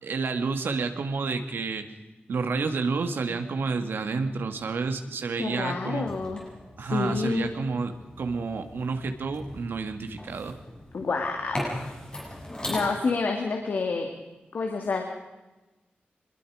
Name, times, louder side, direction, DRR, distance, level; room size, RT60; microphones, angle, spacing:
voice 1, 0.0-1.8 2.3-6.1 6.8-10.5, right 4 dB, 85° right, 6 dB, 2.2 m, -30 dB
voice 2, 5.4-6.4 6.8-7.5 10.9-11.9 12.7-14.1 14.5-15.0, left 4 dB, 60° left, 2 dB, 2.5 m, -28 dB
sound 1, 6.0-12.8, left 1 dB, 25° left, 7.8 m, -39 dB
24.5 x 21.5 x 5.1 m, 1.1 s
wide cardioid pair, 160°, 4 cm